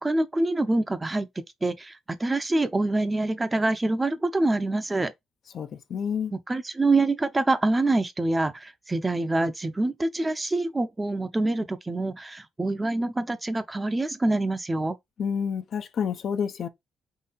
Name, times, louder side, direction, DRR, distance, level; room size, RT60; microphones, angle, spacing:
voice 1, 0.0-1.3 1.6-5.1 6.3-15.0, right 2 dB, 20° right, 0.5 m, -25 dB
voice 2, 5.5-6.3 15.2-16.7, left 7 dB, 60° left, 0.5 m, -29 dB
3.8 x 2.7 x 4.0 m
cardioid pair, 90°, 0 cm